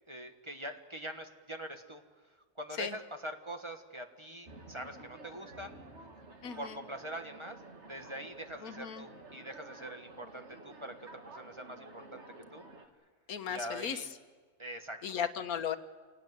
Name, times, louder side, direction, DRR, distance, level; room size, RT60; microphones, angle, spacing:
voice 1, 0.1-2.0 2.6-5.7 6.6-7.6 7.9-12.2 12.5-12.6 13.5-14.1 14.6-15.0, right 1 dB, 20° right, 5 dB, 1.4 m, -43 dB
sound 1, 4.5-12.9, right 2 dB, 50° right, 2.3 m, -52 dB
voice 2, 6.4-6.7 8.6-9.0 13.3-14.0 15.0-15.8, left 8 dB, 90° left, 9 dB, 1.6 m, -36 dB
28.0 x 18.0 x 9.3 m, 1.5 s
omnidirectional pair, 1.5 m